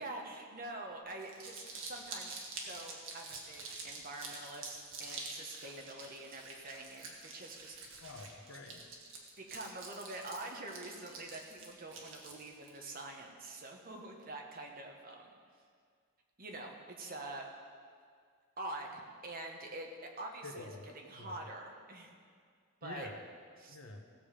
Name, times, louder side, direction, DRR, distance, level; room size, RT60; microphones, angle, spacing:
voice 1, 0.0-7.8 9.4-15.3 16.4-17.4 18.6-19.9 20.2-20.7 20.9-22.1 22.8-23.1 23.6-23.8, right 2 dB, 45° right, 1 dB, 1.4 m, -46 dB
Crumpling crinkling, 1.1-12.9, right 3 dB, 65° right, 1.8 m, -47 dB
voice 2, 8.0-8.9 20.4-20.9 21.1-21.3 22.8-23.2 23.7-24.0, left 2 dB, 75° left, 3 dB, 1.3 m, -48 dB
17.0 x 7.3 x 5.1 m, 2.1 s
head